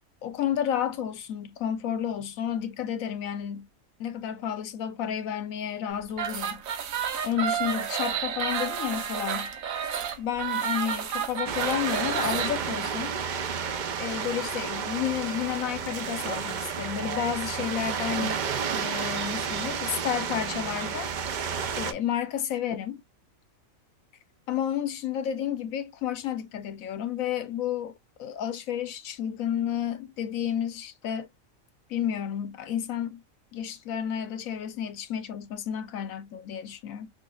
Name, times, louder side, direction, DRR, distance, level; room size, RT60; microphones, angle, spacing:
voice 1, 0.2-3.7 4.0-6.6 7.2-9.5 10.2-13.1 14.0-18.4 18.7-21.1 21.8-23.0 24.5-27.9 28.2-31.3 31.9-33.2 33.5-37.1, left 9 dB, 80° left, 1.1 m, -31 dB
sound 1, 6.1-12.5, right 8 dB, 90° right, 1.2 m, -30 dB
sound 2, 11.4-21.9, right 6 dB, 60° right, 0.5 m, -31 dB
6.0 x 2.4 x 2.3 m
omnidirectional pair, 1.4 m